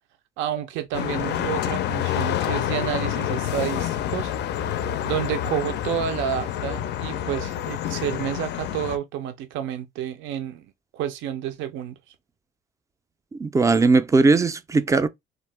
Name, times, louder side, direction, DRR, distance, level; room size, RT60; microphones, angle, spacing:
voice 1, 0.4-4.3 5.1-10.6 10.9-12.1, right 10 dB, 80° right, 0.5 m, -30 dB
sound 1, 0.9-9.0, left 11 dB, 65° left, 0.4 m, -28 dB
voice 2, 13.3-15.1, right 3 dB, 15° right, 0.3 m, -19 dB
2.8 x 2.0 x 3.2 m
cardioid pair, 105°, 19 cm